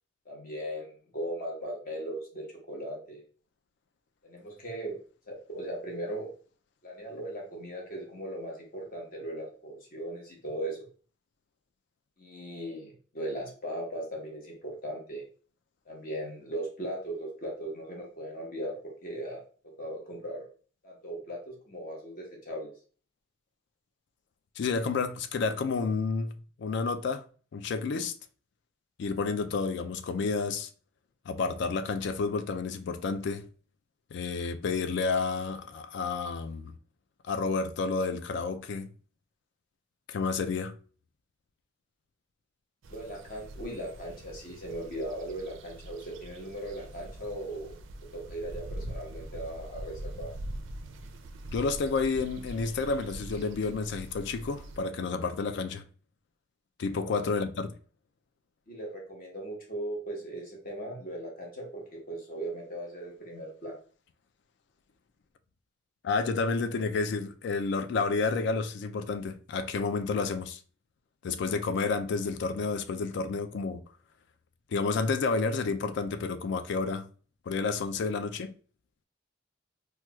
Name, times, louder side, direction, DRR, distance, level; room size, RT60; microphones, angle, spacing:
voice 1, 0.3-3.2 4.2-5.0 5.3-6.3 6.8-10.9 12.2-15.2 15.9-18.8 19.0-19.4 19.8-20.5 20.8-22.7 42.9-47.7 48.1-50.3 57.0-57.3 58.7-61.8 62.1-63.8, right 1 dB, 50° left, 1.0 m, -38 dB
voice 2, 24.6-26.3 26.6-27.2 27.5-28.1 29.0-30.7 31.3-33.5 34.1-36.7 37.3-38.9 40.1-40.7 51.5-55.8 56.8-57.7 66.0-70.6 71.2-73.8 74.7-77.1 77.5-78.5, left 4 dB, 65° left, 0.3 m, -30 dB
sound 1, 42.8-54.8, right 1 dB, 85° right, 0.4 m, -43 dB
4.4 x 2.2 x 2.2 m
head